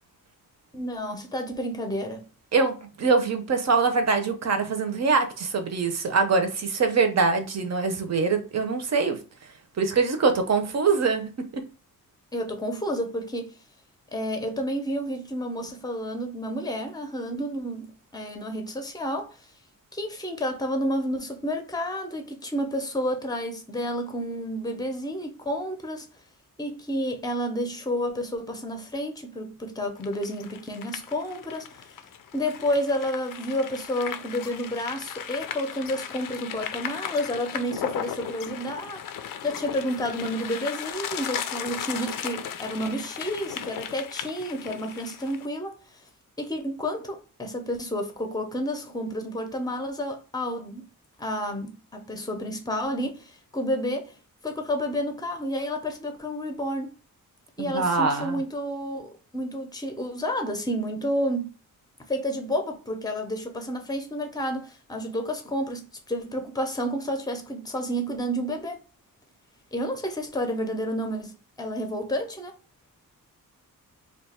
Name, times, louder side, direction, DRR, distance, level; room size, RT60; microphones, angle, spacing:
voice 1, 0.7-2.3 12.3-13.6 14.1-19.5 19.9-26.1 26.6-39.0 39.4-46.0 46.4-50.8 51.2-54.1 54.4-56.9 57.6-61.5 62.1-68.8 69.7-72.5, equal, 10° left, 0.6 m, -30 dB
voice 2, 2.5-9.2 9.8-11.6 57.6-58.4, right 4 dB, 50° right, 0.7 m, -24 dB
sound 1, 30.0-45.5, left 9 dB, 75° left, 0.5 m, -36 dB
2.8 x 2.3 x 4.2 m
wide cardioid pair, 130°, 33 cm